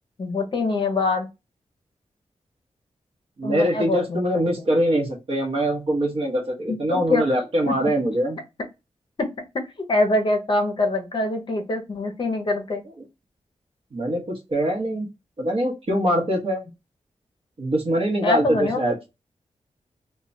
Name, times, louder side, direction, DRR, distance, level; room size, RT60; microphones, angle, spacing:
voice 1, 0.2-1.3 3.4-4.2 6.7-7.2 7.7-7.8 9.2-9.3 9.9-12.8 18.2-18.8, left 2 dB, 45° left, 4 dB, 0.6 m, -24 dB
voice 2, 3.4-8.4 13.9-15.1 15.4-16.6 17.6-19.1, equal, 55° right, 0 dB, 0.9 m, -23 dB
3.1 x 2.2 x 2.5 m, 0.25 s
wide cardioid pair, 175°, 12 cm